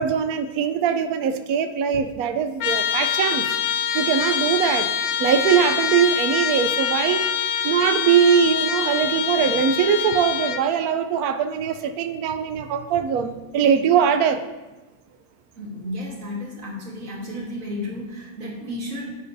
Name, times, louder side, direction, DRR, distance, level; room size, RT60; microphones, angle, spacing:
voice 1, 0.0-3.6 3.9-4.9 5.2-7.3 7.6-14.4, right 7 dB, 85° right, 9 dB, 1.1 m, -21 dB
Trumpet, 2.6-10.7, left 9 dB, 75° left, 1.1 m, -25 dB
voice 2, 15.6-19.1, left 1 dB, 65° right, -2 dB, 1.8 m, -32 dB
10.0 x 7.1 x 2.6 m, 1.1 s
omnidirectional pair, 1.5 m